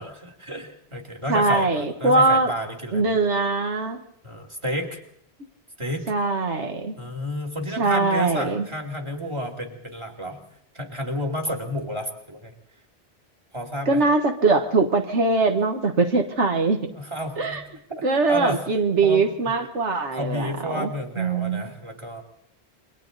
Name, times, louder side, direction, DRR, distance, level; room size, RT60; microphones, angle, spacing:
voice 1, 0.0-3.1 4.2-5.0 5.8-6.0 7.0-10.4 10.7-12.5 13.5-14.0 16.9-17.6 18.1-18.6 19.0-19.3 20.2-22.2, equal, 25° right, 4 dB, 2.8 m, -31 dB
voice 2, 1.3-2.5 2.9-4.0 6.1-7.0 7.8-8.7 13.9-16.9 17.4-17.6 18.0-20.9 21.2-21.7, right 3 dB, 85° right, 5 dB, 1.7 m, -22 dB
28.5 x 22.5 x 4.0 m, 0.70 s
omnidirectional pair, 1.2 m